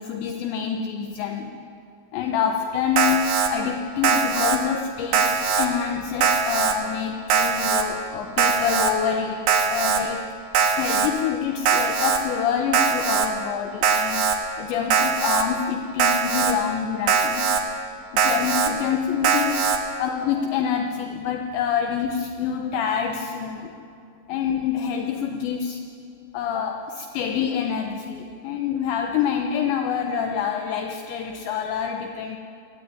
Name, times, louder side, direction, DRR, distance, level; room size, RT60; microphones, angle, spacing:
voice 1, 0.0-1.5 2.1-10.3 10.7-17.5 18.1-19.7 20.0-23.7 24.3-25.8 26.3-32.4, left 7 dB, 75° left, 4 dB, 3.0 m, -27 dB
Alarm, 3.0-3.5 4.0-4.6 5.1-5.7 6.2-6.7 7.3-7.8 8.4-8.9 9.5-10.0 10.5-11.1 11.7-12.2 12.7-13.3 13.8-14.4 14.9-15.4 16.0-16.5 17.1-17.6 18.2-18.7 19.2-19.8, right 6 dB, 60° right, 3.0 m, -21 dB
25.5 x 18.0 x 9.7 m, 2.5 s
omnidirectional pair, 5.8 m